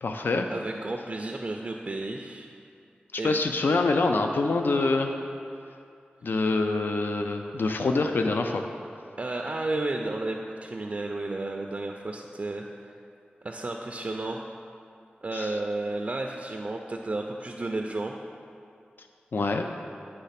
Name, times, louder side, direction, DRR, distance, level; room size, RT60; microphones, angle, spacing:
voice 1, 0.0-0.5 3.2-5.1 6.2-8.6 15.3-15.5 19.3-19.7, left 3 dB, 75° left, 5 dB, 0.4 m, -25 dB
voice 2, 0.5-2.5 3.2-3.4 9.2-12.6 13.4-14.4 15.2-18.2, right 2 dB, 40° right, 2 dB, 0.4 m, -32 dB
9.2 x 3.2 x 5.7 m, 2.5 s
wide cardioid pair, 90°, 3 cm